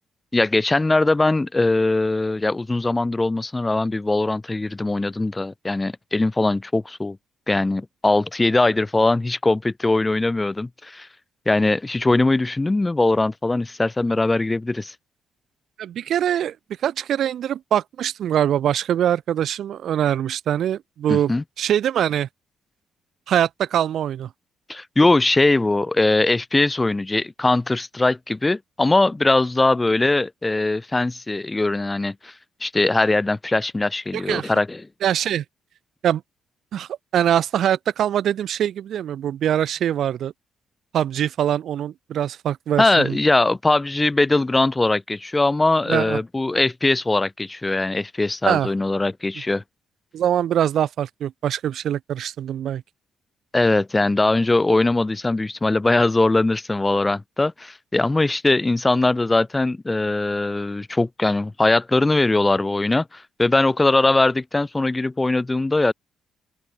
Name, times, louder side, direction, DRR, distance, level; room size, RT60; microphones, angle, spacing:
voice 1, 0.3-7.2 7.5-11.1 11.5-14.9 21.1-21.4 24.7-32.3 32.6-34.8 42.8-49.6 53.5-65.9, left 2 dB, 20° left, 0.9 m, -21 dB
voice 2, 15.8-16.6 16.8-21.3 21.6-22.3 23.3-24.3 34.1-34.5 35.0-35.4 36.0-36.2 36.7-40.3 40.9-43.2 45.9-46.2 48.4-48.7 50.1-52.8, right 10 dB, 70° right, 1.4 m, -23 dB
open air
hypercardioid pair, 50°, 0 cm